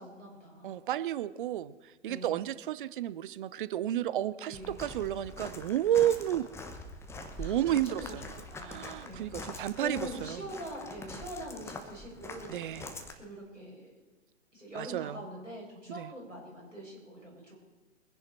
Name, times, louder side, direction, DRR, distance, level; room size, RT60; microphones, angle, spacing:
voice 1, 0.0-0.8 2.1-2.4 4.5-4.8 7.4-8.2 8.5-12.6 13.1-14.0 14.5-17.6, equal, 90° right, -3 dB, 6.0 m, -44 dB
voice 2, 0.6-6.5 7.4-8.2 8.6-10.5 12.5-12.9 14.7-15.2 15.9-16.1, right 12 dB, 45° right, 16 dB, 0.7 m, -32 dB
Walk footsteps, 4.5-13.1, left 2 dB, 5° left, 1.1 m, -44 dB
23.0 x 10.5 x 4.4 m, 1.2 s
figure-of-eight pair, 110°, 37 cm